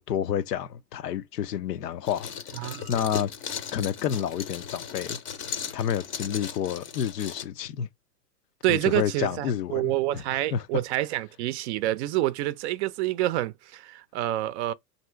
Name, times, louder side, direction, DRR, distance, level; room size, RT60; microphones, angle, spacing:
voice 1, 0.0-2.3 2.6-3.3 3.7-5.2 5.7-7.9 8.7-10.2 10.5-10.7, left 9 dB, 85° left, 0.6 m, -29 dB
sound 1, 2.0-7.4, left 7 dB, 25° left, 0.6 m, -37 dB
voice 2, 2.5-3.1 8.6-14.7, right 15 dB, 45° right, 0.5 m, -28 dB
3.0 x 2.7 x 4.4 m
hypercardioid pair, 95°, 47 cm